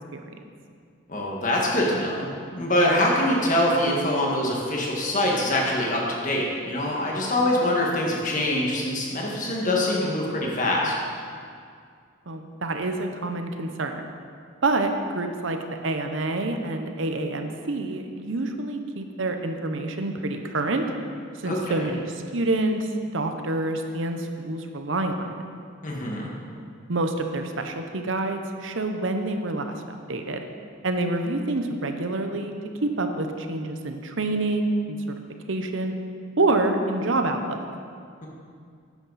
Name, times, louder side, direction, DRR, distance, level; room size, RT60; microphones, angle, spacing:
voice 1, 1.1-10.9 21.5-21.9 25.8-26.3, left 1 dB, 35° left, -2 dB, 1.8 m, -24 dB
voice 2, 12.3-14.0 14.6-15.6 15.8-20.8 21.4-25.4 26.9-30.4 30.8-32.5 32.8-35.0 35.5-35.9 36.4-37.6, right 2 dB, 65° right, 6 dB, 0.8 m, -27 dB
12.0 x 9.7 x 4.1 m, 2.2 s
head